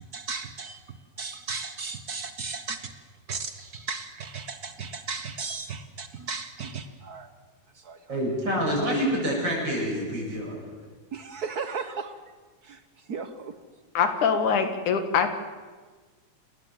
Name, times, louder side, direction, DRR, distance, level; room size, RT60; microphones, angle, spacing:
voice 1, 0.0-2.9 3.3-7.3 7.7-8.0 11.1-12.1 12.6-13.5, right 5 dB, 70° right, 10 dB, 0.9 m, -36 dB
voice 2, 8.1-10.6, equal, 35° right, -2 dB, 8.5 m, -27 dB
voice 3, 14.0-15.3, left 6 dB, 85° left, 8 dB, 3.4 m, -23 dB
29.0 x 19.5 x 7.7 m, 1.4 s
omnidirectional pair, 3.4 m